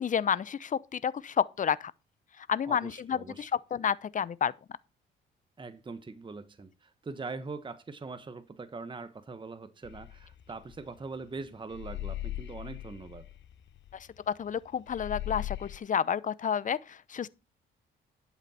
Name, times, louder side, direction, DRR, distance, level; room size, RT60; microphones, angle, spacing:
voice 1, 0.0-1.9 2.5-4.5 14.3-17.3, left 8 dB, 40° left, 0.7 m, -30 dB
voice 2, 2.6-3.5 5.6-13.3, right 4 dB, 25° right, 1.1 m, -42 dB
sound 1, 9.8-11.3 11.7-14.6 14.9-15.8, left 14 dB, 65° left, 0.8 m, -39 dB
11.5 x 8.0 x 4.3 m
cardioid pair, 90°, 20 cm